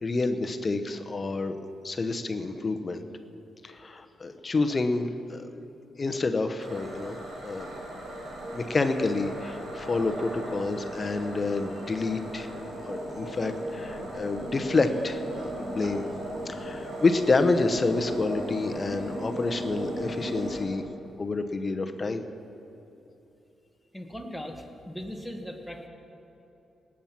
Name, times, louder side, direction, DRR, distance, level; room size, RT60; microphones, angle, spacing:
voice 1, 0.0-1.6 1.8-3.0 3.6-5.5 6.0-7.7 8.5-12.5 12.8-16.1 16.5-20.8 21.2-22.2, left 3 dB, 40° left, 8 dB, 0.9 m, -28 dB
sound 1, 6.6-20.6, right 1 dB, 85° right, 3.3 m, -37 dB
voice 2, 23.9-25.9, equal, ahead, 2 dB, 1.6 m, -39 dB
19.0 x 7.4 x 5.9 m, 2.9 s
cardioid pair, 70°, 0 cm